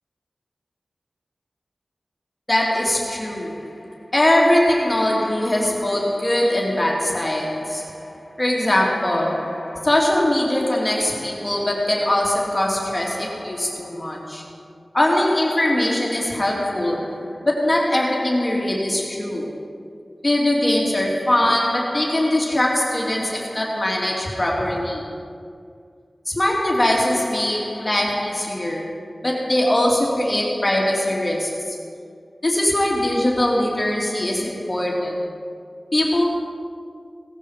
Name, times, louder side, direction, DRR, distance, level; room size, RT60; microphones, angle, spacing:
voice 1, 2.5-14.5 14.9-19.6 20.2-25.1 26.3-29.0 29.2-31.8 32.4-35.4 35.9-36.2, left 1 dB, 25° left, -2 dB, 2.8 m, -21 dB
18.0 x 14.5 x 5.1 m, 2.2 s
wide cardioid pair, 65°, 0 cm